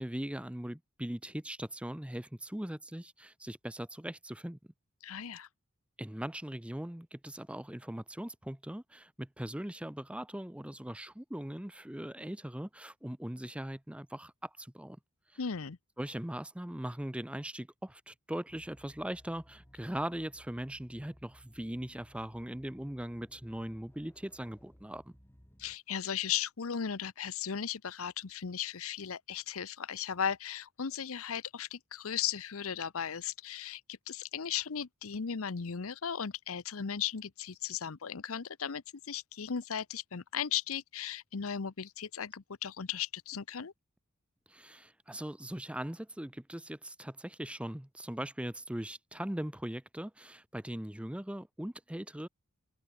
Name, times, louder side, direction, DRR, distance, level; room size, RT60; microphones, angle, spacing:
voice 1, 0.0-4.6 6.0-15.0 16.0-25.0 44.5-52.3, right 1 dB, 5° right, 0.7 m, -40 dB
voice 2, 5.0-5.5 15.4-15.8 25.6-43.7, left 8 dB, 70° left, 0.8 m, -36 dB
sound 1, 18.5-25.8, equal, 10° left, 1.8 m, -60 dB
head